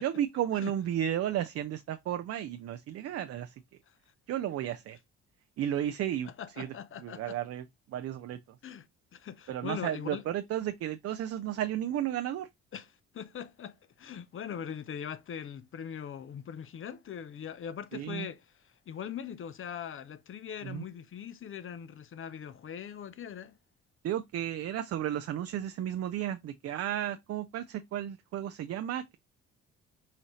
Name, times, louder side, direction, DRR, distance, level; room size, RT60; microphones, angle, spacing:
voice 1, 0.0-3.6 4.3-5.0 5.6-6.3 6.6-8.6 9.5-12.5 17.9-18.3 20.6-20.8 24.0-29.2, right 11 dB, 50° right, 0.5 m, -33 dB
voice 2, 6.4-7.4 8.6-8.9 9.1-10.2 12.7-12.9 13.1-18.4 18.9-23.6, left 8 dB, 40° left, 0.6 m, -41 dB
5.6 x 2.6 x 3.0 m
supercardioid pair, 60°, 32 cm